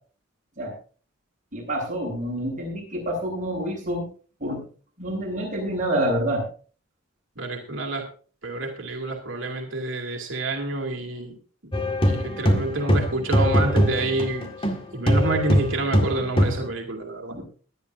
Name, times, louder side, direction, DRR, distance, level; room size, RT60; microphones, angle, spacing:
voice 1, 1.5-4.1 4.4-4.6 5.0-6.4 17.3-17.4, right 1 dB, 40° right, -2 dB, 7.9 m, -27 dB
voice 2, 7.4-8.1 8.4-11.3 11.8-14.7 14.9-17.4, right 2 dB, 70° right, 2 dB, 2.6 m, -28 dB
sound 1, 11.7-14.8 15.1-16.7, equal, 25° left, 1.8 m, -21 dB
21.0 x 10.5 x 2.6 m, 0.39 s
head